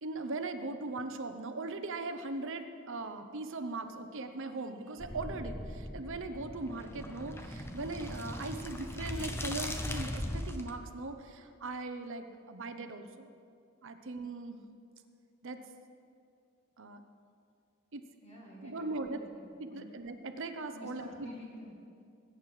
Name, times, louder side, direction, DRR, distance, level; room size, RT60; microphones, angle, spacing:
voice 1, 0.0-13.3 13.8-14.7 15.4-15.6 16.8-17.0 17.9-18.1 18.6-19.2 19.6-21.3, right 2 dB, 65° right, 8 dB, 0.9 m, -39 dB
sound 1, 5.0-10.7, left 1 dB, 10° left, 0.8 m, -39 dB
voice 2, 18.2-19.4 19.7-19.9 20.7-22.0, left 1 dB, 30° left, -4 dB, 2.1 m, -50 dB
20.5 x 8.9 x 4.9 m, 2.4 s
head